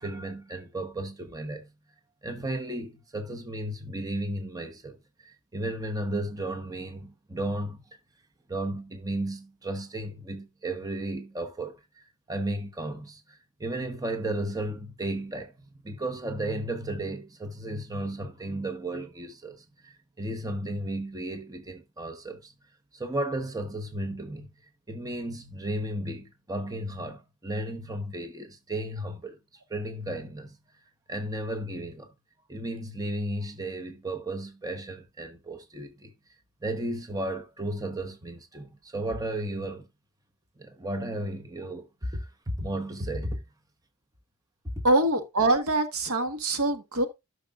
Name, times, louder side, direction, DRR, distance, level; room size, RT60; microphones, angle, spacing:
voice 1, 0.0-1.7 2.2-7.8 8.5-15.5 15.8-19.6 19.8-22.5 22.9-24.5 24.9-29.4 29.7-30.5 31.1-32.1 32.5-36.1 36.6-39.9 40.6-43.4 44.8-44.9, right 1 dB, 15° right, 1.0 m, -34 dB
voice 2, 44.8-47.1, right 2 dB, 75° right, 1.4 m, -24 dB
12.5 x 6.4 x 2.4 m
head